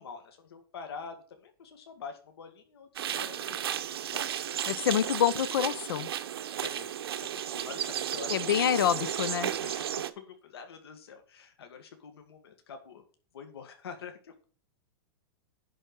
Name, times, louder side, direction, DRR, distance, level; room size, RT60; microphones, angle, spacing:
voice 1, 0.0-5.3 6.6-6.9 7.2-9.1 9.4-13.0 13.3-14.4, left 6 dB, 90° left, 1.9 m, -46 dB
sound 1, 2.9-10.1, right 10 dB, 85° right, 0.9 m, -34 dB
voice 2, 4.7-6.1 8.3-9.5, left 10 dB, 70° left, 0.8 m, -27 dB
10.5 x 4.4 x 6.2 m
supercardioid pair, 180°, 13 cm